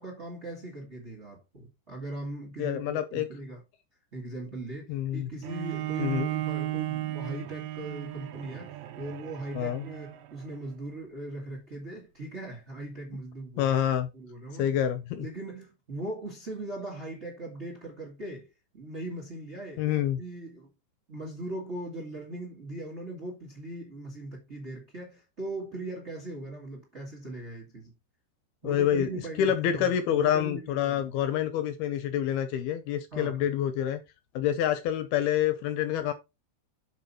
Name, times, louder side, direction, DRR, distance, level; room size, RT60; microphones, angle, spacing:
voice 1, 0.0-3.6 4.1-8.7 9.0-13.8 14.1-14.7 15.2-18.5 18.7-20.7 21.1-27.9 28.6-31.1 33.1-33.4, right 1 dB, 35° right, 1.0 m, -39 dB
voice 2, 2.6-3.3 4.9-5.3 6.0-6.3 9.5-9.9 13.6-14.1 14.6-15.3 19.8-20.2 28.6-34.0 34.4-36.1, left 10 dB, 75° left, 2.4 m, -27 dB
Bowed string instrument, 5.4-10.7, right 14 dB, 85° right, 2.1 m, -35 dB
7.4 x 5.5 x 4.2 m
omnidirectional pair, 5.1 m